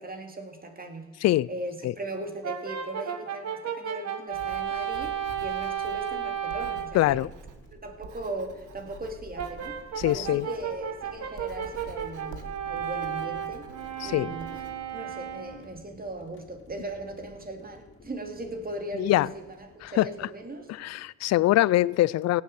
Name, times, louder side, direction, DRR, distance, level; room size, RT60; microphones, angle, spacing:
voice 1, 0.0-7.2 7.7-9.8 10.1-13.7 14.0-20.7, right 2 dB, 30° right, 2.4 m, -38 dB
Brass instrument, 2.4-7.0 9.4-15.7, right 9 dB, 60° right, 1.6 m, -34 dB
Writing, 4.3-14.7, right 4 dB, 80° right, 1.7 m, -47 dB
sound 1, 5.9-20.9, left 3 dB, 40° left, 2.9 m, -54 dB
voice 2, 6.9-7.3 10.0-10.5 14.0-14.4 19.0-19.3 19.8-20.1 20.7-22.4, left 15 dB, 60° left, 0.4 m, -23 dB
17.0 x 8.5 x 7.7 m
cardioid pair, 90°, 30 cm